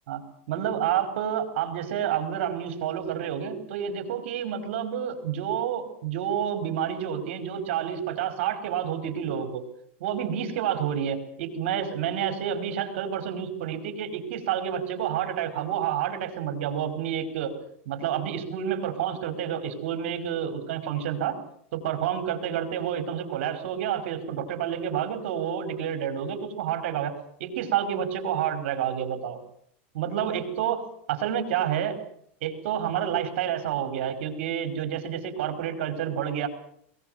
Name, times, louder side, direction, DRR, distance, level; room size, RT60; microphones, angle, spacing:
voice 1, 0.5-9.6 10.0-17.5 17.8-21.4 21.7-27.1 27.4-29.4 29.9-30.8 31.1-31.9 32.4-36.5, right 9 dB, 65° right, 8 dB, 4.9 m, -29 dB
21.5 x 19.5 x 8.0 m, 0.65 s
supercardioid pair, 165°, 7 cm